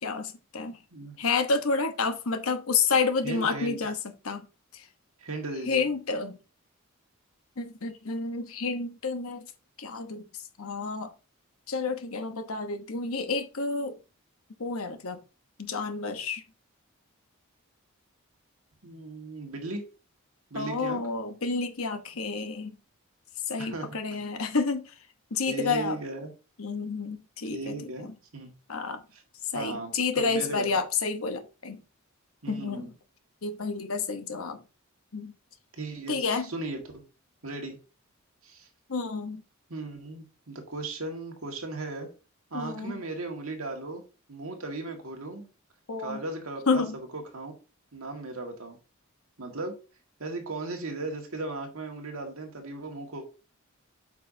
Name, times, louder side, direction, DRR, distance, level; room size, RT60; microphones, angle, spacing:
voice 1, 0.0-0.8 1.2-4.0 4.2-4.5 4.7-4.9 5.7-6.4 7.6-9.5 9.8-10.2 10.6-11.1 11.7-14.0 14.6-15.2 15.6-16.4 20.5-22.8 23.5-24.9 25.3-26.0 26.6-28.1 28.7-29.0 29.5-31.8 32.5-32.9 33.4-34.6 35.1-35.3 36.1-36.5 38.9-39.4 42.5-43.0 45.9-46.2 46.7-46.9, left 4 dB, 75° left, 1.0 m, -30 dB
voice 2, 3.2-3.8 5.2-5.9 18.8-19.8 20.5-21.0 23.6-24.0 25.5-26.3 27.5-28.5 29.1-29.2 29.5-30.8 32.4-32.9 35.8-37.0 37.4-37.8 38.4-38.7 39.7-42.1 42.5-45.5 46.0-47.5 47.9-48.8 49.4-49.8 50.2-53.3, right 2 dB, 75° right, 1.8 m, -37 dB
8.1 x 5.5 x 2.7 m
head